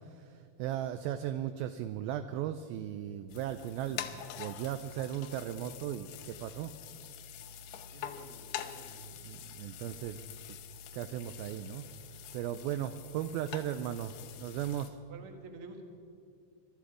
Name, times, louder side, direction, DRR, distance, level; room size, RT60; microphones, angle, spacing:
voice 1, 0.0-6.7 9.0-10.6 10.9-11.9 12.3-14.1 14.4-15.0, right 11 dB, 85° right, 10 dB, 2.1 m, -37 dB
sound 1, 3.3-14.9, left 9 dB, 85° left, 2.7 m, -46 dB
voice 2, 7.9-9.0 15.1-15.8, right 2 dB, 50° right, 3 dB, 1.7 m, -49 dB
22.0 x 12.5 x 4.9 m, 2.4 s
omnidirectional pair, 4.7 m